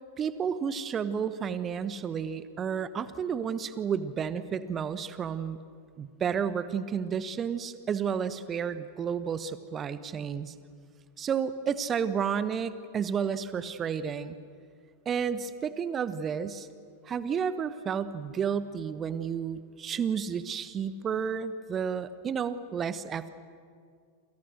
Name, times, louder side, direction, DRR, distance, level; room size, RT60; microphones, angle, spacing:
voice 1, 0.2-5.6 6.0-10.5 11.2-14.4 15.0-16.7 17.0-23.3, right 7 dB, 25° right, 14 dB, 1.2 m, -31 dB
28.5 x 27.5 x 6.5 m, 2.2 s
figure-of-eight pair, 90°, 0 cm